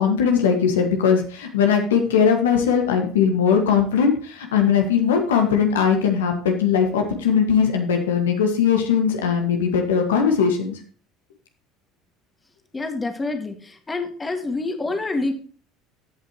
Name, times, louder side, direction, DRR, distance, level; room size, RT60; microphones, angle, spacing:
voice 1, 0.0-10.8, left 7 dB, 85° left, 4 dB, 1.5 m, -19 dB
voice 2, 12.7-15.3, left 3 dB, 20° left, 6 dB, 1.8 m, -27 dB
15.5 x 5.6 x 2.9 m, 0.42 s
hypercardioid pair, 70°, 0 cm